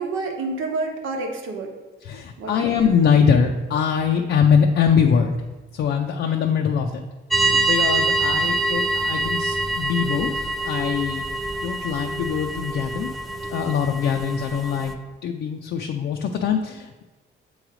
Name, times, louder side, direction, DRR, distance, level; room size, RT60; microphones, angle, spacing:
voice 1, 0.0-1.7 2.4-2.7, right 3 dB, 80° right, 2 dB, 1.1 m, -28 dB
voice 2, 2.0-5.4 5.7-7.0 7.4-11.2 11.6-13.1 13.5-14.9 15.2-17.0, left 7 dB, 65° left, 2 dB, 0.5 m, -22 dB
sound 1, 7.3-14.9, right 2 dB, ahead, 0.5 m, -25 dB
7.1 x 3.2 x 4.9 m, 1.2 s
cardioid pair, 90°, 20 cm